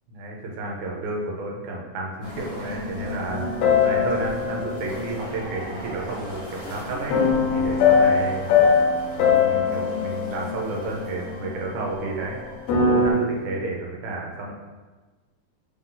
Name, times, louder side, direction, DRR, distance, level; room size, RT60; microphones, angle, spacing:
voice 1, 0.2-3.5 3.8-7.2 7.5-8.5 9.2-12.4 12.8-14.5, right 2 dB, 90° right, -1 dB, 2.1 m, -31 dB
sound 1, 2.2-13.4, left 2 dB, 35° left, 1.0 m, -37 dB
sound 2, 3.3-6.0 7.1-11.5 12.5-13.1, left 5 dB, 75° left, 1.7 m, -22 dB
4.7 x 3.7 x 2.6 m, 1.3 s
omnidirectional pair, 3.4 m